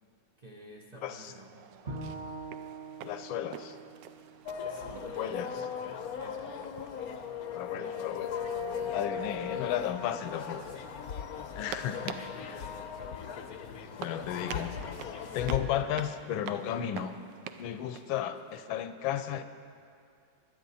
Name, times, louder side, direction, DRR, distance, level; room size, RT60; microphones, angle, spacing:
voice 1, 0.4-2.4 4.7-6.9 7.7-8.1 12.0-13.0, right 2 dB, 50° right, -1 dB, 0.4 m, -52 dB
voice 2, 1.0-1.3 3.0-3.8 5.0-5.6 7.5-8.3 8.9-10.8 11.5-12.6 14.0-14.8 15.3-17.2 17.6-19.4, left 10 dB, 80° left, 10 dB, 1.4 m, -34 dB
sound 1, 1.2-18.6, right 9 dB, 75° right, 1.2 m, -48 dB
Bowed string instrument, 1.9-5.1, right 3 dB, 30° right, 1.2 m, -44 dB
sound 2, 4.5-15.6, left 7 dB, 65° left, 1.0 m, -38 dB
21.5 x 9.4 x 4.1 m, 2.3 s
omnidirectional pair, 2.2 m